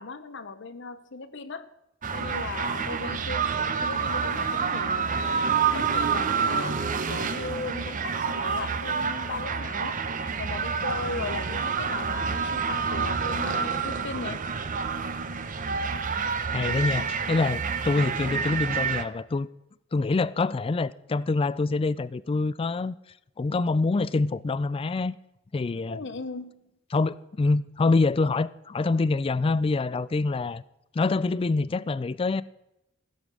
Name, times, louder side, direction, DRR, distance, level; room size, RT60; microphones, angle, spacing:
voice 1, 0.0-1.7 2.1-10.0 10.4-14.5 25.9-26.7, left 4 dB, 65° left, 0.9 m, -37 dB
sound 1, 2.0-19.0, right 6 dB, 40° right, 0.8 m, -28 dB
voice 2, 16.5-19.5 19.9-22.9 23.4-25.2 25.5-26.0 26.9-30.6 30.9-32.4, left 3 dB, 25° left, 0.3 m, -25 dB
15.5 x 7.2 x 6.3 m
head